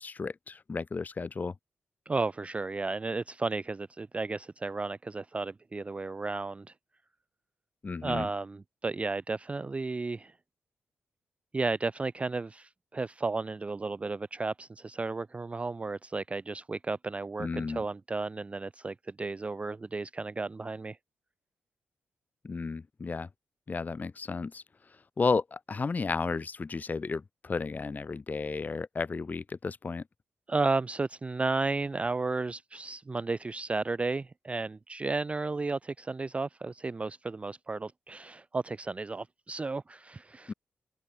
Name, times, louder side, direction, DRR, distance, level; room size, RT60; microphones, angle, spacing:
voice 1, 0.0-1.5 7.8-8.3 17.4-17.8 22.4-23.3 23.7-24.6 25.2-30.0 40.5-40.6, left 4 dB, 35° left, 0.6 m, -33 dB
voice 2, 2.1-6.7 8.0-10.3 11.5-21.0 30.5-40.5, right 3 dB, 25° right, 0.3 m, -33 dB
open air
cardioid pair, 55°, 5 cm